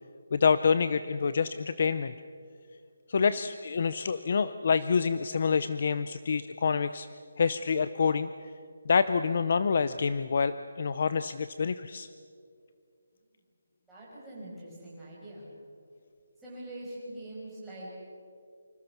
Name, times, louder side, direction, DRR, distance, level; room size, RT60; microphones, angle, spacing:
voice 1, 0.3-2.1 3.1-7.1 7.4-8.3 8.9-12.1, left 5 dB, 35° left, 13 dB, 0.6 m, -27 dB
voice 2, 13.9-15.5 16.4-17.9, right 1 dB, 5° right, -10 dB, 5.5 m, -43 dB
27.0 x 26.0 x 6.0 m, 2.3 s
hypercardioid pair, 180°, 0 cm